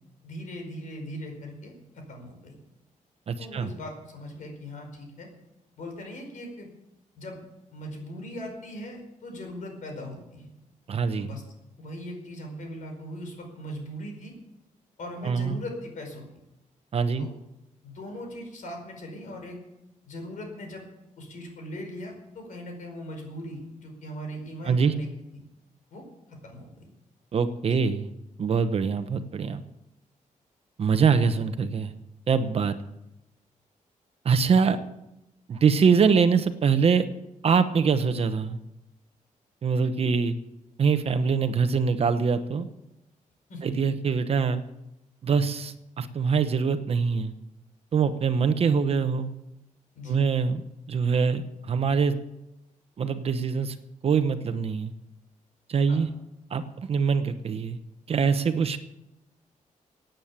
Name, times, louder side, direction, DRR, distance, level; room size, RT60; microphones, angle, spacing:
voice 1, 0.2-2.6 3.4-5.3 5.8-6.7 7.2-7.4 7.7-10.5 11.2-11.4 11.8-14.3 15.0-16.3 17.2-17.3 17.8-19.6 20.0-20.8 21.2-25.4 25.9-26.9 27.7-27.8 43.5-43.7 49.9-50.3 55.9-56.0, equal, 70° left, 3 dB, 5.0 m, -39 dB
voice 2, 3.3-3.7 10.9-11.3 15.2-15.6 16.9-17.3 24.6-24.9 27.3-28.1 28.4-29.6 30.8-31.9 32.3-32.8 34.2-34.8 35.5-37.1 37.4-38.6 39.6-40.3 40.8-42.7 43.6-44.6 45.2-47.3 47.9-49.3 50.1-50.6 50.9-52.1 53.0-53.7 54.0-54.9 55.7-56.1 56.5-57.8 58.1-58.8, right 5 dB, 45° right, 10 dB, 1.0 m, -24 dB
17.0 x 9.2 x 7.3 m, 0.89 s
wide cardioid pair, 165°, 14 cm